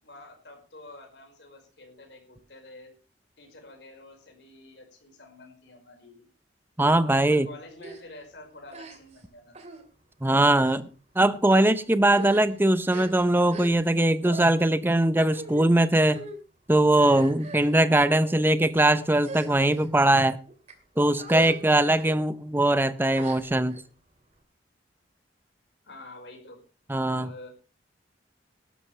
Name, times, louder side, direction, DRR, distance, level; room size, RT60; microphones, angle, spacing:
voice 1, 0.0-2.9 3.4-6.3 7.3-9.6 25.8-26.6 27.1-27.5, left 2 dB, 65° left, 5.2 m, -48 dB
voice 2, 6.8-7.5 10.2-10.8 11.2-16.2 16.7-20.4 21.0-23.8 26.9-27.3, right 1 dB, 10° right, 0.7 m, -21 dB
sound 1, 7.8-8.0 8.7-9.2 9.5-9.8 10.5-10.8 11.5-11.7 12.0-14.0 14.2-14.5 15.3-15.6 16.0-16.4 16.9-17.8 18.4-18.7 19.2-19.9 20.5-20.7 21.2-21.6 21.9-22.1 23.1-23.8, right 2 dB, 40° right, 2.5 m, -40 dB
18.0 x 12.5 x 3.3 m
head